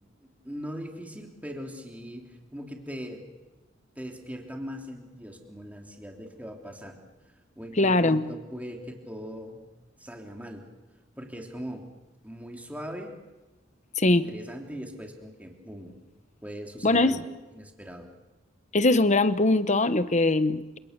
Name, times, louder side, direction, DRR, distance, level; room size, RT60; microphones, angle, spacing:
voice 1, 0.2-3.3 3.9-6.9 7.6-9.6 10.0-10.7 11.2-11.8 12.2-13.1 14.1-16.0 16.4-17.2 17.6-18.1, equal, 10° right, 1 dB, 3.3 m, -40 dB
voice 2, 7.8-8.3 14.0-14.3 16.8-17.2 18.7-20.8, left 2 dB, 35° left, 12 dB, 1.2 m, -22 dB
29.0 x 27.0 x 6.8 m, 1.2 s
head